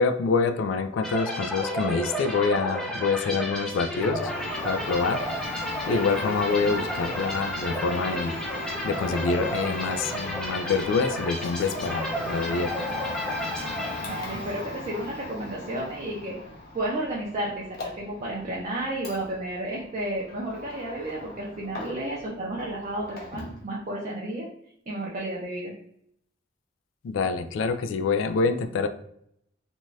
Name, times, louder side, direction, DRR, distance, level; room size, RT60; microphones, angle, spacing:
voice 1, 0.0-4.3 4.6-5.2 5.5-5.6 5.9-8.4 8.8-12.9 27.0-28.9, left 4 dB, 80° left, 9 dB, 0.3 m, -26 dB
sound 1, 1.0-14.6, equal, 5° left, 0.6 m, -32 dB
Domestic sounds home sounds, 3.9-22.3 22.5-23.6, left 2 dB, 55° left, 0.7 m, -37 dB
voice 2, 14.0-16.4 16.7-24.5 24.9-25.7, right 1 dB, 40° right, -4 dB, 0.5 m, -32 dB
2.6 x 2.3 x 3.1 m, 0.71 s
head